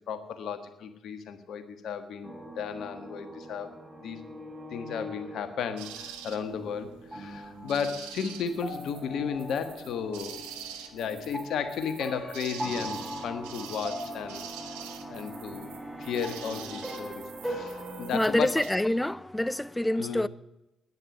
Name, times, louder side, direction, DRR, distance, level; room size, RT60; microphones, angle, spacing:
voice 1, 0.1-3.8 4.0-4.2 4.7-10.5 10.9-14.4 15.1-15.7 16.0-18.6 20.0-20.3, left 6 dB, 65° left, 1.5 m, -34 dB
sound 1, 2.2-18.2, equal, 15° right, 6.0 m, -41 dB
sound 2, 5.8-18.7, right 9 dB, 85° right, 1.0 m, -45 dB
sound 3, 8.4-14.4, left 4 dB, 50° left, 2.2 m, -50 dB
voice 2, 18.1-20.3, left 1 dB, 10° left, 0.6 m, -26 dB
9.8 x 9.7 x 9.4 m
hypercardioid pair, 45°, 0 cm